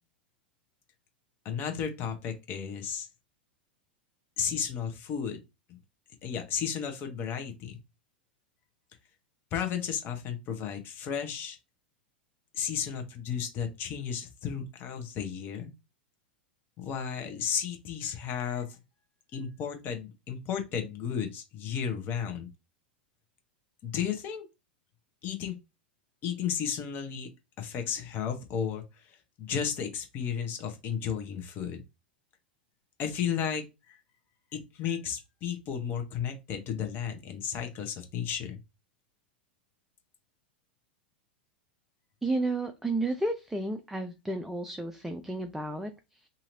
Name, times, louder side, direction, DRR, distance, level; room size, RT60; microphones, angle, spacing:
voice 1, 1.4-3.1 4.4-5.4 5.7-5.8 6.2-7.8 9.5-11.6 12.5-15.7 16.8-18.8 19.3-22.5 23.8-24.5 25.2-25.6 26.2-27.3 27.6-31.8 33.0-34.0 34.5-38.6, left 8 dB, 40° left, 0.9 m, -33 dB
voice 2, 42.2-46.3, right 2 dB, 5° right, 0.4 m, -32 dB
2.9 x 2.8 x 2.6 m
hypercardioid pair, 95°, 6 cm